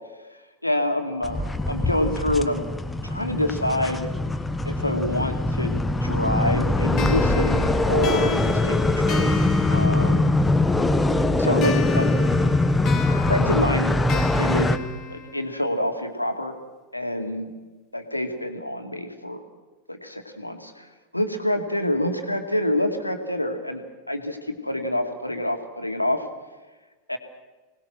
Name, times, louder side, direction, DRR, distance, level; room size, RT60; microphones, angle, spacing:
voice 1, 0.6-2.7 3.0-4.1 4.7-9.4 9.7-10.3 11.4-12.1 13.3-14.8 15.1-16.5 16.9-17.5 17.9-19.4 19.9-20.9 21.1-26.3 27.1-27.2, left 1 dB, 85° left, 5 dB, 2.3 m, -27 dB
sound 1, 1.2-14.8, left 2 dB, 5° left, 1.3 m, -22 dB
sound 2, 7.0-10.6 11.6-15.6, left 5 dB, 30° left, 3.2 m, -33 dB
24.5 x 19.0 x 6.3 m, 1.2 s
figure-of-eight pair, 90°, 0 cm